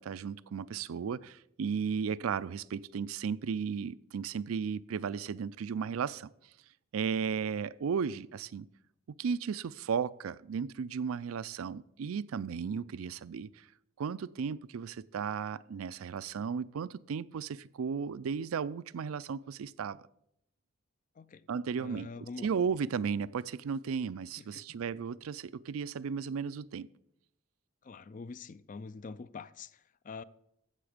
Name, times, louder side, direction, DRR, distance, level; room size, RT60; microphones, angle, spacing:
voice 1, 0.0-6.3 6.9-8.7 9.1-13.6 14.0-20.0 21.5-22.1 22.4-26.9, right 6 dB, 90° right, 0.4 m, -35 dB
voice 2, 21.2-21.5 21.8-22.5 24.4-24.6 27.8-30.2, left 4 dB, 40° left, 0.4 m, -45 dB
15.0 x 6.8 x 5.0 m
head